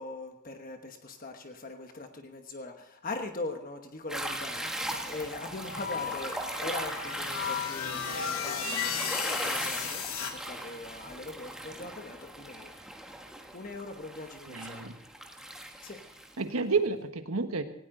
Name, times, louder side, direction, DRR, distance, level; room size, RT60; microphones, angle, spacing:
voice 1, 0.0-12.7 13.5-14.9 15.8-16.0, left 2 dB, 40° left, 5 dB, 1.1 m, -41 dB
sound 1, 4.1-16.4, right 1 dB, 5° right, 1.4 m, -39 dB
sound 2, 5.6-10.3, left 6 dB, 70° left, 2.3 m, -34 dB
voice 2, 14.5-14.9 16.4-17.6, right 4 dB, 85° right, 8 dB, 1.4 m, -30 dB
18.0 x 17.5 x 3.9 m, 0.83 s
head